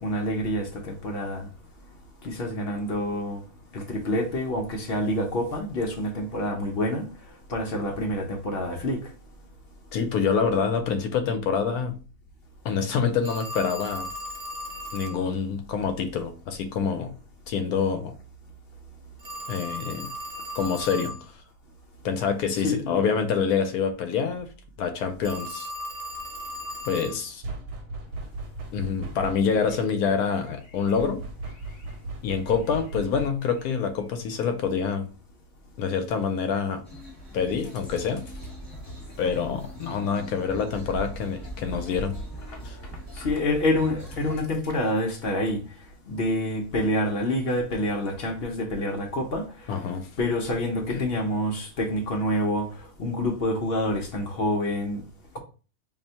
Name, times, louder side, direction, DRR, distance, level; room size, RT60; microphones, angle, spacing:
voice 1, 0.0-1.5 2.2-3.4 3.7-7.1 7.5-9.0 22.6-23.0 43.2-45.6 46.1-49.5 50.2-52.7 53.0-55.0, left 1 dB, 55° left, 0.7 m, -27 dB
voice 2, 9.9-11.9 12.6-14.1 14.9-17.1 17.5-18.1 19.5-20.1 20.5-21.4 22.0-24.5 24.8-25.7 26.9-27.4 28.7-31.2 32.2-35.1 35.8-36.8 37.3-38.2 39.2-42.2 42.6-42.8 49.7-50.1 50.9-51.0, left 6 dB, 75° left, 1.0 m, -26 dB
Telephone, 13.2-15.2 19.2-21.2 25.2-27.2, equal, 65° right, 1.1 m, -36 dB
sound 1, 27.4-29.7 30.9-33.6, right 2 dB, 80° right, 1.1 m, -37 dB
sound 2, 36.8-44.4, equal, 10° left, 1.3 m, -40 dB
2.8 x 2.6 x 4.3 m
omnidirectional pair, 1.6 m